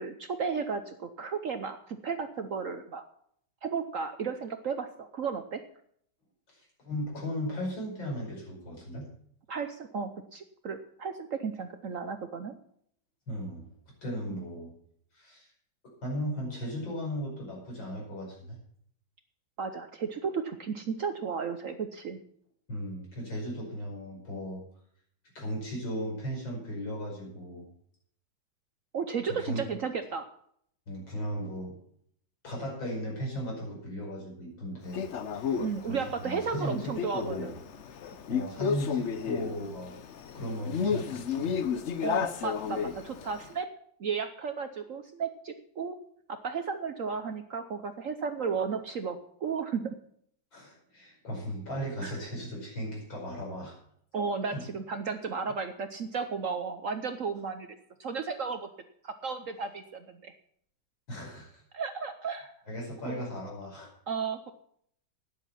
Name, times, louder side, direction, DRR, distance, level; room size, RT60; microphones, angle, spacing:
voice 1, 0.0-3.0 3.6-5.6 9.5-12.5 14.3-14.5 19.6-22.2 28.9-30.3 35.6-37.5 42.0-43.7 44.0-46.0 46.3-50.0 52.0-52.2 54.1-57.7 58.0-58.7 59.0-60.3 61.7-62.5 63.1-63.2 64.1-64.5, right 5 dB, 55° right, 8 dB, 0.9 m, -34 dB
voice 2, 6.5-9.1 13.3-13.7 14.0-14.7 15.1-15.5 16.0-18.6 22.7-24.6 25.3-27.7 29.3-29.6 30.9-31.8 32.4-35.1 35.3-37.6 38.3-39.9 40.3-41.5 50.5-53.7 54.5-54.6 61.1-61.6 62.7-63.9, equal, 80° left, -2 dB, 6.1 m, -36 dB
Male speech man speaking, 34.9-43.5, left 7 dB, 60° left, 0.8 m, -33 dB
12.0 x 10.0 x 5.7 m, 0.66 s
omnidirectional pair, 2.1 m